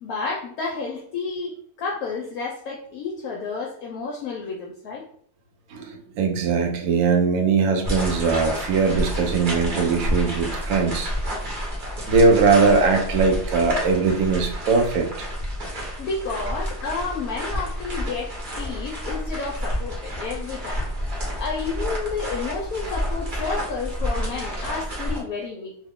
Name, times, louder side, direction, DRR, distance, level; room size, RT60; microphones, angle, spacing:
voice 1, 0.0-5.0 16.0-20.8 21.4-25.8, left 4 dB, 70° left, -1 dB, 1.0 m, -31 dB
voice 2, 5.7-11.1 12.1-15.3 19.1-19.2, right 4 dB, 70° right, 3 dB, 1.1 m, -20 dB
sound 1, 7.8-25.2, equal, 40° right, 0.9 m, -29 dB
3.0 x 2.3 x 3.5 m, 0.62 s
omnidirectional pair, 1.7 m